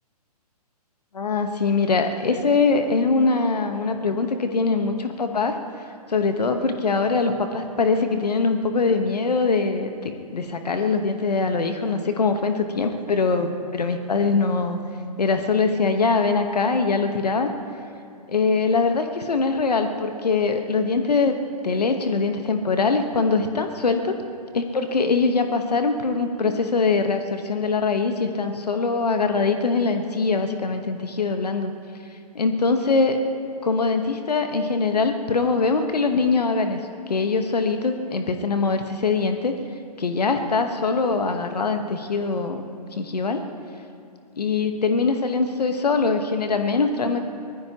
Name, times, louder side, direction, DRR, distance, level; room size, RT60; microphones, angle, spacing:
voice 1, 1.1-5.6 6.1-14.8 15.2-17.5 18.3-21.4 21.6-24.2 24.5-31.7 32.3-33.2 33.6-36.8 37.1-39.5 40.0-42.7 42.9-43.4 44.4-47.2, left 4 dB, 75° left, 6 dB, 1.2 m, -22 dB
24.5 x 19.0 x 2.9 m, 2.4 s
figure-of-eight pair, 130°, 20 cm